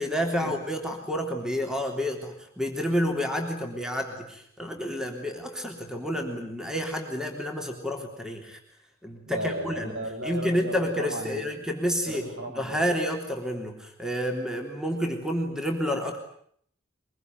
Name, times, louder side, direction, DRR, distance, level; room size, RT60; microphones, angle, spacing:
voice 1, 0.0-8.6 9.0-10.0 10.2-12.2 12.6-16.2, equal, 5° right, 3 dB, 3.5 m, -29 dB
voice 2, 9.2-11.5 12.0-12.9, right 1 dB, 75° right, 4 dB, 7.2 m, -35 dB
24.0 x 22.5 x 9.5 m, 0.65 s
head